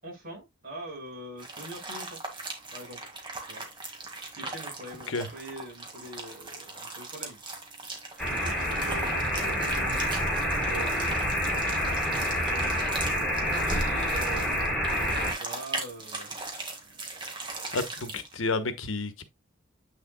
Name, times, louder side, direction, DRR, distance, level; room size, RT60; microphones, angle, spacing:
voice 1, 0.0-2.2 2.7-3.0 3.5-3.7 4.3-7.4 8.3-10.1 10.6-16.4 16.8-17.4, right 2 dB, 50° right, 5.6 m, -43 dB
sound 1, 1.4-18.3, right 3 dB, 25° right, 1.9 m, -39 dB
sound 2, 8.2-15.3, equal, ahead, 3.0 m, -28 dB
voice 2, 17.7-19.3, left 3 dB, 85° left, 1.1 m, -31 dB
8.3 x 6.5 x 2.2 m
head